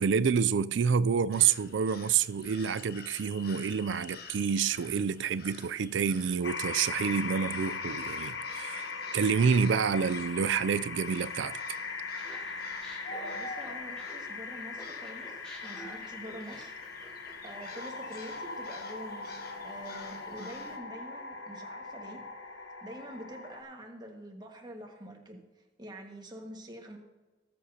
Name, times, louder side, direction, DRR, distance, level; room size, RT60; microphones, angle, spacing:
voice 1, 0.0-8.9 9.1-11.6, right 6 dB, 80° right, 0.4 m, -28 dB
sound 1, 1.3-20.8, left 3 dB, 55° left, 1.2 m, -49 dB
sound 2, 6.4-23.6, left 4 dB, 75° left, 1.1 m, -40 dB
Laughter, 12.2-14.4 14.7-17.9, equal, 5° left, 3.5 m, -49 dB
voice 2, 13.1-16.7 17.0-17.1 17.4-22.2 22.8-25.4 25.8-27.0, right 1 dB, 25° right, 1.6 m, -46 dB
19.5 x 7.7 x 2.8 m
head